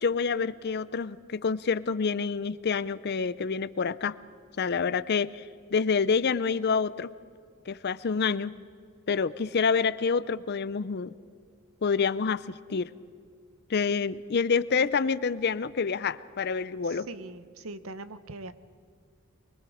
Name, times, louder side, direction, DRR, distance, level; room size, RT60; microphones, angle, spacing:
voice 1, 0.0-4.2 4.6-5.4 5.7-7.1 7.7-8.5 9.1-11.1 11.8-12.9 13.7-17.1, left 5 dB, 50° left, 16 dB, 0.5 m, -27 dB
voice 2, 16.8-18.5, right 2 dB, 70° right, 13 dB, 0.9 m, -41 dB
24.0 x 21.5 x 5.0 m, 2.2 s
head